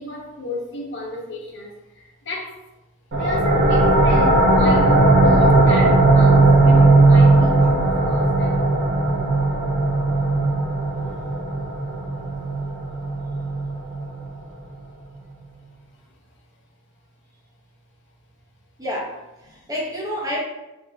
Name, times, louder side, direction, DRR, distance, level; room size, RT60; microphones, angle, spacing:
voice 1, 0.0-2.5 3.1-8.6 10.9-11.3, left 2 dB, 55° left, -2 dB, 0.8 m, -33 dB
sound 1, 3.1-14.5, right 2 dB, 50° right, 0.6 m, -17 dB
voice 2, 18.8-20.4, equal, 15° right, -4 dB, 0.8 m, -29 dB
3.5 x 2.4 x 3.3 m, 1.0 s
head